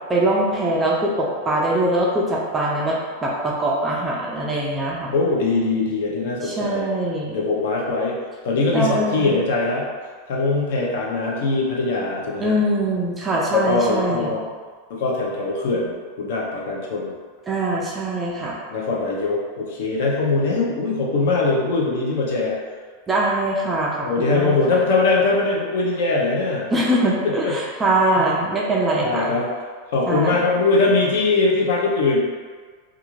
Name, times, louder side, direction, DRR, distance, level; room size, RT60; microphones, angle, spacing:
voice 1, 0.1-5.1 6.4-7.4 8.7-9.4 12.4-14.4 17.5-18.6 23.1-24.5 26.7-29.3 30.1-30.4, right 1 dB, 10° right, -4 dB, 0.3 m, -22 dB
voice 2, 5.1-6.9 7.3-8.1 8.4-9.9 10.3-12.6 13.5-14.4 14.9-17.1 18.7-22.6 24.0-26.7 27.2-27.6 28.2-28.4 29.0-29.5 29.9-32.2, left 3 dB, 60° left, -2 dB, 0.6 m, -21 dB
2.5 x 2.4 x 3.0 m, 1.5 s
supercardioid pair, 175°, 0 cm